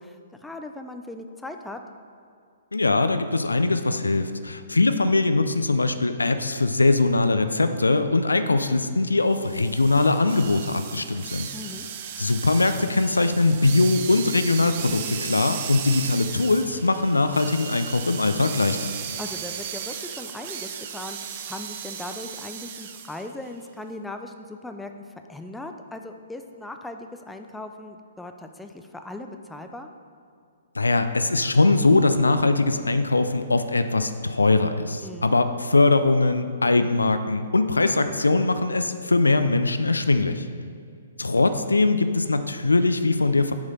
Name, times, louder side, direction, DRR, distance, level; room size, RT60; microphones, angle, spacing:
voice 1, 0.0-1.8 11.5-11.9 19.2-24.9 25.3-29.9 35.0-35.4, left 2 dB, 5° left, 5 dB, 0.4 m, -38 dB
voice 2, 2.7-11.5 12.2-18.9 30.7-40.5 41.2-43.5, left 3 dB, 80° left, 10 dB, 0.4 m, -21 dB
sound 1, 9.3-23.3, right 8 dB, 40° right, 0.6 m, -36 dB
7.0 x 4.8 x 5.4 m, 2.3 s
figure-of-eight pair, 120°, 0 cm